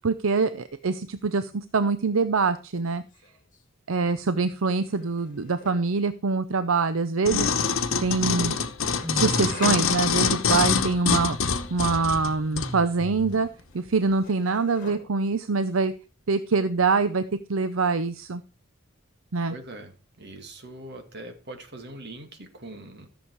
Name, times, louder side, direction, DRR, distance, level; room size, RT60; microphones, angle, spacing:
voice 1, 0.0-3.0 3.9-7.5 8.0-8.6 9.1-13.5 13.7-15.9 16.3-17.2 17.5-18.4 19.3-19.5, right 4 dB, 75° right, 12 dB, 0.6 m, -24 dB
sound 1, 2.3-2.6 2.8-3.6 4.6-6.0 9.0-10.6 12.8-13.4 13.7-15.4, left 3 dB, 40° left, 2.1 m, -44 dB
sound 2, 7.2-12.7 13.3-13.4, left 6 dB, 75° left, 1.1 m, -25 dB
sound 3, 9.0-9.9 12.5-13.7, right 1 dB, 25° right, 1.1 m, -37 dB
voice 2, 19.5-23.1, right 2 dB, 55° right, 5 dB, 2.2 m, -42 dB
13.5 x 7.1 x 4.7 m, 0.34 s
head